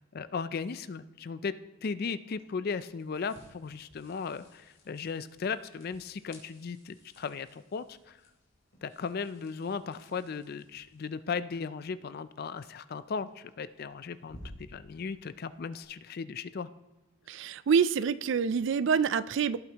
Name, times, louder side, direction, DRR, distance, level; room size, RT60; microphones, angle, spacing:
voice 1, 0.1-8.2 8.8-16.7, left 5 dB, 45° left, 14 dB, 0.4 m, -36 dB
sound 1, 2.3-15.8, left 1 dB, 70° left, 3.5 m, -57 dB
voice 2, 17.3-19.6, right 6 dB, 60° right, 16 dB, 0.3 m, -26 dB
17.5 x 8.8 x 2.9 m, 1.0 s
head